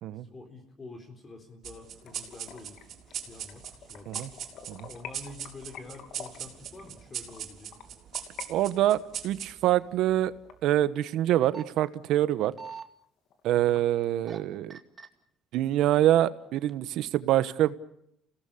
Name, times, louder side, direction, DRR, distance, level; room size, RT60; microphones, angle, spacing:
voice 1, 0.1-2.8 3.1-4.2 4.9-7.8 13.5-13.8, left 3 dB, 25° left, 4 dB, 4.0 m, -47 dB
sound 1, 1.6-10.5, right 9 dB, 55° right, 4.1 m, -41 dB
sound 2, 2.0-8.5 8.8-11.3 11.7-11.8 12.2-12.3 12.7-12.8 13.0-13.8, left 7 dB, 60° left, 2.8 m, -48 dB
voice 2, 8.5-10.3 10.6-12.5 13.4-14.8 15.5-17.8, right 13 dB, 70° right, 14 dB, 1.2 m, -25 dB
sound 3, 11.3-11.6 12.3-12.8 14.0-14.4 14.7-15.1 15.8-16.3 16.7-16.8, right 5 dB, 30° right, 2.2 m, -42 dB
28.5 x 18.0 x 8.7 m, 0.77 s
cardioid pair, 110°, 0 cm